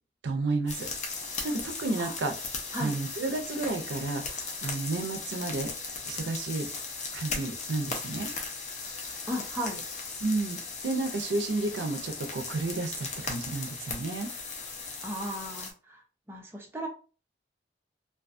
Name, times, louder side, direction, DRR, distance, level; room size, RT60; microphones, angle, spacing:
voice 1, 0.2-0.9 1.4-2.3 2.8-5.7 6.1-6.7 7.1-8.3 10.2-14.3, right 3 dB, 85° right, 4 dB, 0.5 m, -31 dB
sound 1, 0.7-15.7, left 4 dB, 40° left, 0.5 m, -37 dB
voice 2, 9.3-9.8 15.0-16.0 16.3-16.9, equal, 15° right, 0 dB, 0.5 m, -35 dB
2.6 x 2.2 x 2.5 m, 0.36 s
head